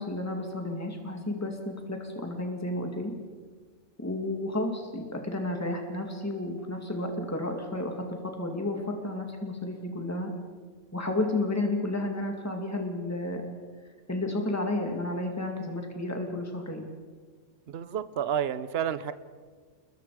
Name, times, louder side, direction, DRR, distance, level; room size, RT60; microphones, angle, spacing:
voice 1, 0.0-3.1 4.0-10.3 10.9-13.4 14.1-16.9, left 2 dB, 10° left, 2 dB, 2.5 m, -32 dB
voice 2, 17.7-19.1, right 9 dB, 55° right, 14 dB, 1.0 m, -30 dB
28.5 x 22.0 x 5.0 m, 1.5 s
omnidirectional pair, 1.3 m